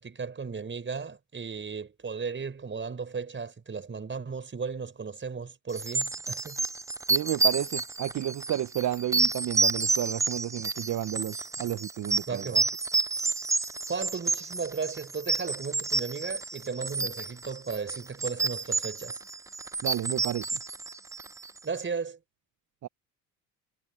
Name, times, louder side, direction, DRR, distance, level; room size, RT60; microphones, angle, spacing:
voice 1, 0.0-6.6 12.3-12.7 13.9-19.2 21.6-22.2, right 5 dB, 25° right, 5.5 m, -35 dB
sound 1, 5.7-21.6, right 3 dB, 10° right, 0.4 m, -30 dB
voice 2, 7.1-12.6 19.8-20.5 22.8-22.9, right 12 dB, 40° right, 1.1 m, -31 dB
hypercardioid pair, 70°, 43 cm